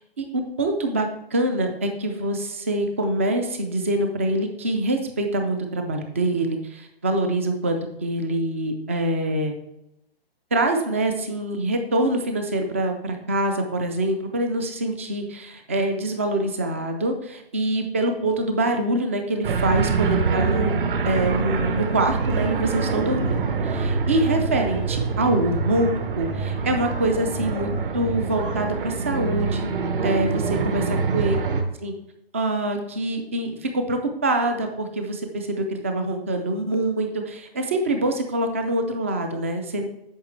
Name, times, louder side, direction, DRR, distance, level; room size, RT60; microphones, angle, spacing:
voice 1, 0.2-9.5 10.5-20.8 21.0-29.7 30.0-31.4 31.8-31.9 32.3-39.9, right 1 dB, 15° right, 5 dB, 0.3 m, -25 dB
sound 1, 19.4-31.6, right 4 dB, 60° right, 1.2 m, -25 dB
8.8 x 6.2 x 3.2 m, 0.82 s
hypercardioid pair, 145°, 31 cm